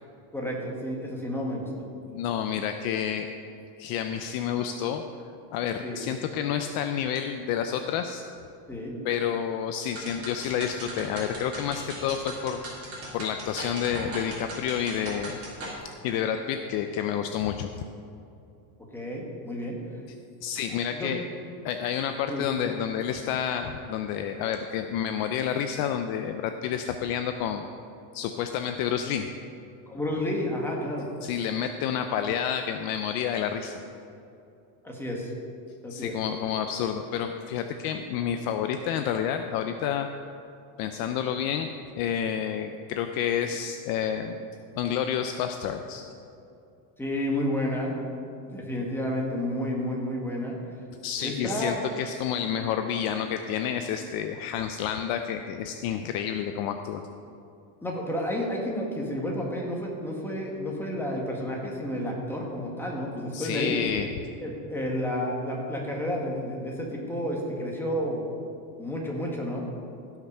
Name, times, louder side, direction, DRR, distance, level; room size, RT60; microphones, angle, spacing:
voice 1, 0.3-1.8 5.8-6.0 8.7-9.0 18.9-19.8 20.9-21.1 22.3-22.4 29.9-31.1 34.8-35.3 35.8-36.1 47.0-47.9 48.5-50.6 51.2-51.8 57.8-63.8 64.4-68.3 68.8-69.7, left 1 dB, 5° left, -2 dB, 1.6 m, -31 dB
voice 2, 2.1-3.3 3.8-5.0 5.5-8.2 9.0-15.4 15.8-17.7 20.4-21.2 21.6-27.7 28.1-29.3 31.2-33.7 35.9-40.1 40.8-41.7 42.0-44.4 44.8-46.1 51.0-57.0 63.3-64.1, left 9 dB, 50° left, 7 dB, 0.5 m, -29 dB
sound 1, 9.9-15.8, right 1 dB, 30° right, 3.0 m, -38 dB
16.0 x 6.0 x 5.4 m, 2.7 s
cardioid pair, 150°, 49 cm